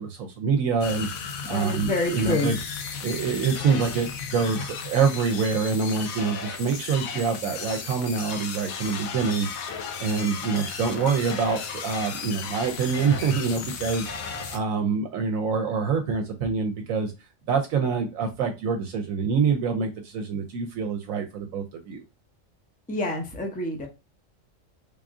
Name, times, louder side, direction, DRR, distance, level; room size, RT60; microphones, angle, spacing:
voice 1, 0.0-2.6 3.0-9.5 10.0-17.1 17.5-22.0, right 5 dB, 80° right, 4 dB, 1.0 m, -26 dB
sound 1, 0.8-14.6, left 6 dB, 85° left, 1.1 m, -35 dB
voice 2, 1.4-2.5 22.9-23.9, left 2 dB, 10° left, 2 dB, 0.5 m, -27 dB
3.5 x 2.5 x 3.5 m, 0.27 s
omnidirectional pair, 1.4 m